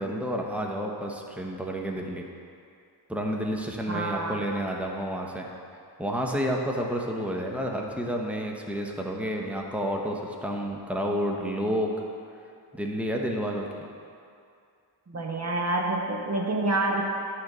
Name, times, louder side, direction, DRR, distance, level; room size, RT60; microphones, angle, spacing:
voice 1, 0.0-2.2 3.1-5.5 6.0-11.9 12.7-13.7, equal, 5° right, 0 dB, 1.1 m, -30 dB
voice 2, 3.9-4.4 15.1-17.0, right 2 dB, 35° right, 0 dB, 0.9 m, -27 dB
10.5 x 3.9 x 6.8 m, 2.4 s
cardioid pair, 60°, 46 cm